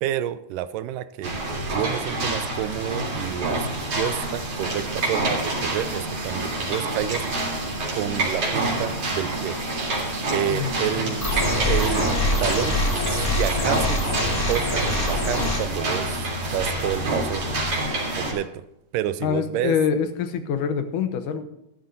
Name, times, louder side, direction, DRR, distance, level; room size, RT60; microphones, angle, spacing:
voice 1, 0.0-3.7 4.0-7.2 7.9-9.6 10.3-11.4 11.7-12.8 13.1-14.0 14.5-17.5 18.1-18.6 18.9-19.8, right 12 dB, 80° right, 14 dB, 2.1 m, -29 dB
sound 1, 1.2-18.3, right 2 dB, 45° right, 4.2 m, -27 dB
voice 2, 10.5-11.1 19.2-21.4, left 7 dB, 75° left, 8 dB, 2.4 m, -25 dB
sound 2, 11.2-15.6, left 1 dB, 5° left, 3.1 m, -24 dB
sound 3, 11.3-17.8, left 2 dB, 30° left, 1.9 m, -37 dB
14.5 x 13.5 x 2.7 m, 0.86 s
omnidirectional pair, 3.9 m